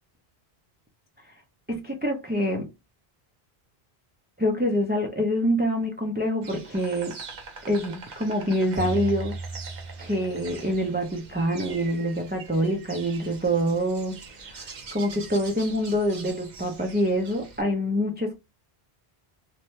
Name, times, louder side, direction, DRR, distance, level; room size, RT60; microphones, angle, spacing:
voice 1, 1.7-2.7 4.4-7.2 7.6-9.4 10.0-18.4, equal, 15° right, 0.3 m, -26 dB
Insect, 6.4-17.6, right 4 dB, 50° right, 0.7 m, -44 dB
sound 1, 8.8-10.7, right 2 dB, 35° left, 0.7 m, -35 dB
2.7 x 2.1 x 3.0 m
omnidirectional pair, 1.0 m